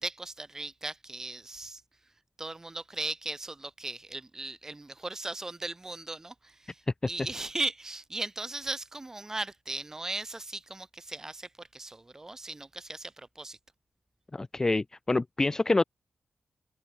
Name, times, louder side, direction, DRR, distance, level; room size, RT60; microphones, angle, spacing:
voice 1, 0.0-1.8 2.4-13.6, right 2 dB, 15° right, 1.8 m, -37 dB
voice 2, 14.3-15.8, left 2 dB, 20° left, 0.5 m, -26 dB
wide cardioid pair, 175°, 3 cm